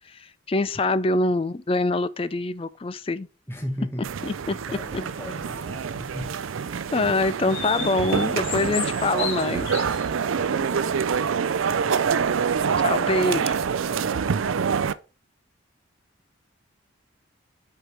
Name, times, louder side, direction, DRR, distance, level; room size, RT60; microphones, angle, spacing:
voice 1, 0.1-3.3 4.3-4.6 6.9-9.7 12.8-13.5, left 2 dB, 25° left, 0.4 m, -24 dB
voice 2, 3.5-4.1 4.4-6.4 10.2-10.9 13.9-14.4, equal, 10° left, 1.2 m, -37 dB
sound 1, 4.0-14.9, right 6 dB, 80° right, 0.4 m, -26 dB
sound 2, 5.3-6.3 6.8-6.9 7.5-10.4, left 9 dB, 60° left, 1.2 m, -35 dB
8.0 x 4.6 x 3.4 m
head